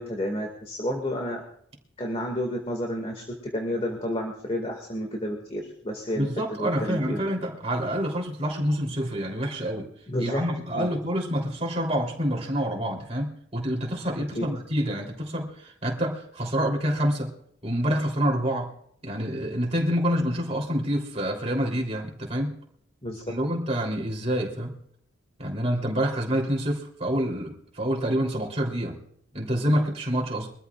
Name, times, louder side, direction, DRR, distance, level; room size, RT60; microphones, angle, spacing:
voice 1, 0.0-1.4 2.0-6.3 6.6-7.3 10.1-10.4 10.7-10.9 14.4-14.5 23.0-23.2, equal, 30° left, 2 dB, 2.0 m, -30 dB
voice 2, 6.1-9.9 10.2-17.3 17.6-18.7 19.0-22.5 23.3-24.7 25.4-29.0 29.3-30.5, equal, 30° right, 0 dB, 3.3 m, -27 dB
24.0 x 14.0 x 2.4 m, 0.68 s
head